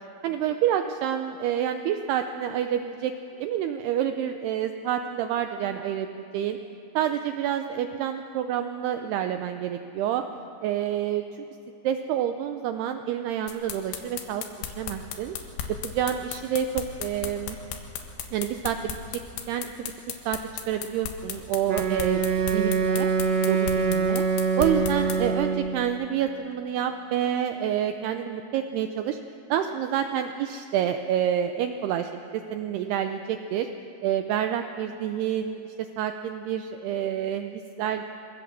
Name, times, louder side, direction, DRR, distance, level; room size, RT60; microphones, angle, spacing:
voice 1, 0.2-3.1 3.4-6.6 7.0-10.2 10.6-11.5 11.8-15.4 15.8-17.6 18.3-19.0 19.5-19.9 20.3-20.4 20.7-23.1 23.5-24.3 24.6-29.2 29.5-33.7 34.0-38.0, right 10 dB, 80° right, 7 dB, 2.4 m, -28 dB
sound 1, 13.5-25.2, left 9 dB, 85° left, 3.9 m, -34 dB
Wind instrument woodwind instrument, 21.6-25.8, right 5 dB, 55° right, 1.9 m, -24 dB
24.0 x 17.0 x 7.3 m, 2.9 s
omnidirectional pair, 5.3 m